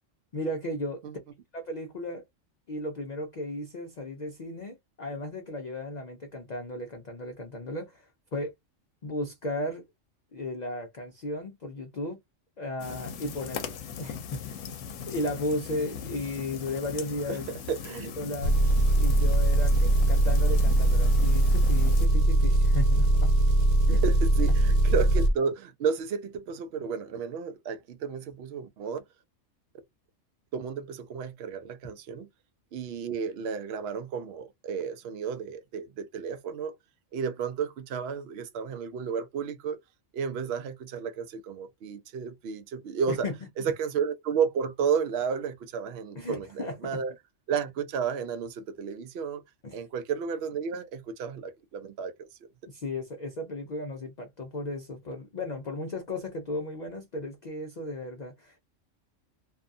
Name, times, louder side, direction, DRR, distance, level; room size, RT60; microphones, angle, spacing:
voice 1, 0.3-1.0 1.5-2.2 2.7-8.5 9.0-9.8 10.3-12.2 12.6-14.7 15.1-17.5 18.2-18.6 19.0-23.3 23.9-24.0 43.1-43.3 43.6-43.7 46.2-47.0 49.6-49.8 52.7-58.6, left 1 dB, 55° left, 0.5 m, -35 dB
sound 1, 12.8-22.1, left 7 dB, 75° left, 0.9 m, -39 dB
voice 2, 17.3-18.1 24.0-29.0 30.5-32.3 32.7-36.7 37.1-39.8 40.1-43.3 43.6-47.1 47.5-49.4 49.7-52.3, right 6 dB, 65° right, 0.7 m, -32 dB
Engine, 18.4-25.3, right 1 dB, 85° right, 1.1 m, -21 dB
2.6 x 2.3 x 2.5 m
omnidirectional pair, 1.3 m